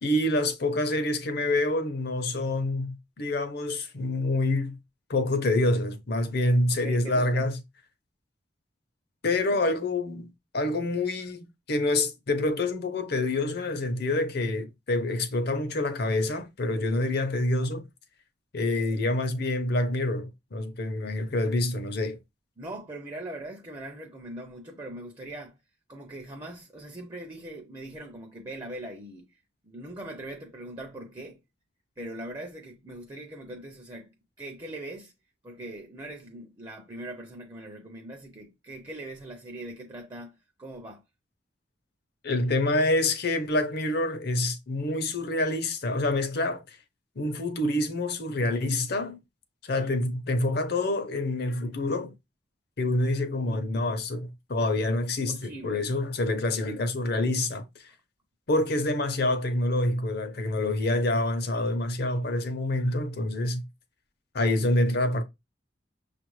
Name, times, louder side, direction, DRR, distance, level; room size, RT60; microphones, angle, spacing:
voice 1, 0.0-4.8 5.1-7.6 9.2-17.8 18.5-22.2 42.2-46.8 47.2-49.2 49.6-52.1 52.8-57.9 58.5-63.7 64.3-65.2, left 2 dB, 60° left, 0.7 m, -27 dB
voice 2, 6.7-7.5 9.5-9.6 22.6-25.6 25.9-31.4 32.0-35.1 35.4-41.0 55.3-56.1, right 1 dB, 20° right, 0.5 m, -41 dB
6.4 x 2.4 x 3.1 m
head